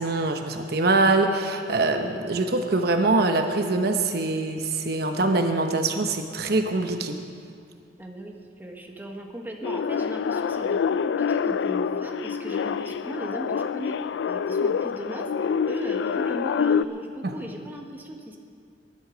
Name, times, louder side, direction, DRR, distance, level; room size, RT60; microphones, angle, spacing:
voice 1, 0.0-7.2 17.2-17.3, right 2 dB, 60° right, 5 dB, 0.9 m, -23 dB
voice 2, 8.0-13.9 14.3-18.4, right 1 dB, 10° right, 1 dB, 1.3 m, -37 dB
sound 1, 9.6-16.8, left 6 dB, 90° left, 0.3 m, -26 dB
19.5 x 11.0 x 5.1 m, 2.3 s
head